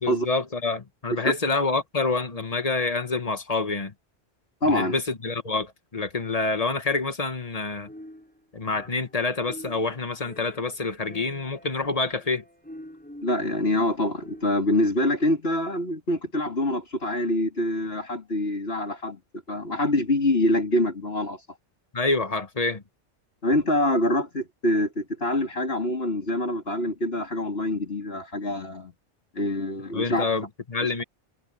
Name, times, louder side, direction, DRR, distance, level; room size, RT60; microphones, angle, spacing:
voice 1, 0.0-3.9 4.6-7.9 8.5-12.4 21.9-22.8 29.9-31.0, left 3 dB, 35° left, 1.5 m, -27 dB
voice 2, 4.6-4.9 13.2-19.2 19.5-21.4 23.4-28.9 29.3-30.3, left 1 dB, 60° left, 3.3 m, -25 dB
sound 1, 7.8-9.2 9.4-14.7, equal, 10° left, 7.5 m, -46 dB
omnidirectional pair, 1.2 m